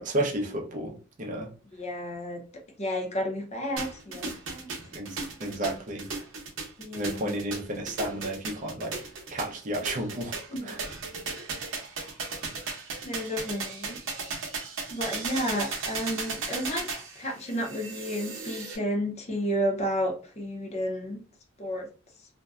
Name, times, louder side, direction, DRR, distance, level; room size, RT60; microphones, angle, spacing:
voice 1, 0.0-1.5 4.9-6.1 7.0-9.0 9.3-10.3 10.6-10.8, right 1 dB, 40° right, 0.6 m, -32 dB
voice 2, 1.7-2.4 2.8-4.7 6.8-7.3 10.5-10.7 13.0-14.0 14.9-16.9 17.2-21.2 21.6-21.9, equal, 35° left, 0.7 m, -31 dB
sound 1, 3.8-18.8, right 4 dB, 85° right, 0.7 m, -36 dB
2.6 x 2.1 x 2.3 m
head